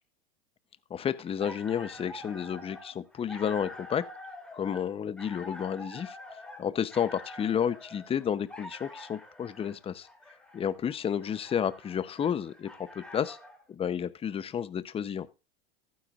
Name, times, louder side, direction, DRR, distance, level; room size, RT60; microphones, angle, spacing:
voice 1, 0.9-4.0 4.5-6.2 6.6-10.1 10.5-12.7 12.9-13.4 13.7-15.3, left 8 dB, 20° left, 0.7 m, -31 dB
sound 1, 1.2-13.6, left 2 dB, 5° left, 2.8 m, -46 dB
14.5 x 9.6 x 2.4 m
hypercardioid pair, 105°, 30 cm